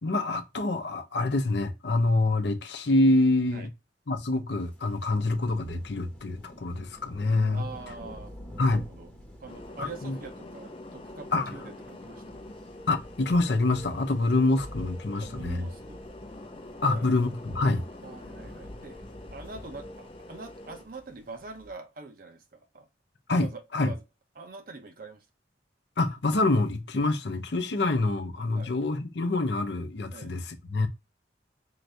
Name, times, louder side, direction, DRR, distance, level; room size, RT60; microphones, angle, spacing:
voice 1, 0.0-3.7 4.1-7.7 8.6-8.9 9.8-10.2 11.3-11.4 12.9-15.7 16.8-17.8 23.3-23.9 26.0-30.9, left 2 dB, 65° left, 0.7 m, -26 dB
sound 1, 4.6-21.7, left 1 dB, 5° left, 0.9 m, -48 dB
voice 2, 7.5-8.3 8.6-9.1 9.4-12.4 15.2-16.0 16.8-17.1 18.0-19.0 19.3-22.9 23.3-24.0 24.4-25.2 28.5-28.7 30.1-30.3, right 3 dB, 50° right, 0.8 m, -44 dB
sound 2, 9.5-20.8, left 1 dB, 30° left, 0.5 m, -45 dB
3.9 x 2.7 x 3.2 m
head